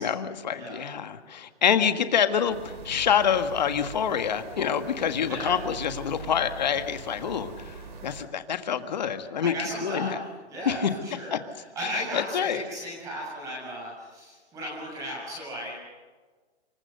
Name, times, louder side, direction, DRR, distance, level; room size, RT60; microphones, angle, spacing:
voice 1, 0.0-9.5 9.8-10.2 10.6-10.9 11.3-11.4 11.8-12.6, left 8 dB, 40° left, 9 dB, 1.7 m, -26 dB
sound 1, 2.5-8.2, right 4 dB, 45° right, 4.5 m, -42 dB
voice 2, 5.3-5.6 9.4-10.2 10.5-11.4 11.8-15.7, equal, 10° right, -2 dB, 7.0 m, -35 dB
27.0 x 24.0 x 6.6 m, 1.4 s
hypercardioid pair, 175°, 34 cm